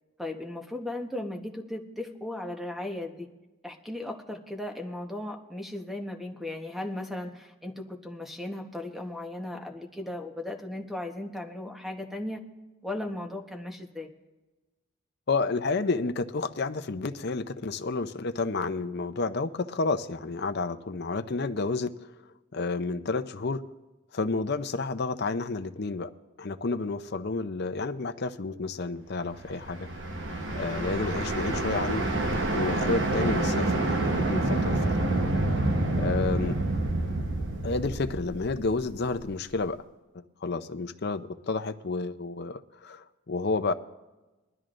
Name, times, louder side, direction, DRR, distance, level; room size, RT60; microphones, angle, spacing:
voice 1, 0.2-3.3 3.6-12.4 12.8-14.1 36.4-36.6, left 1 dB, ahead, 3 dB, 1.0 m, -36 dB
voice 2, 15.3-21.9 22.5-23.6 24.1-26.1 26.4-29.9 30.5-32.1 32.5-35.1 36.0-36.6 37.6-39.8 40.1-43.7, left 3 dB, 50° left, 9 dB, 0.6 m, -30 dB
sound 1, 29.3-39.3, right 2 dB, 60° right, 1.1 m, -28 dB
22.0 x 12.5 x 2.5 m, 1.1 s
head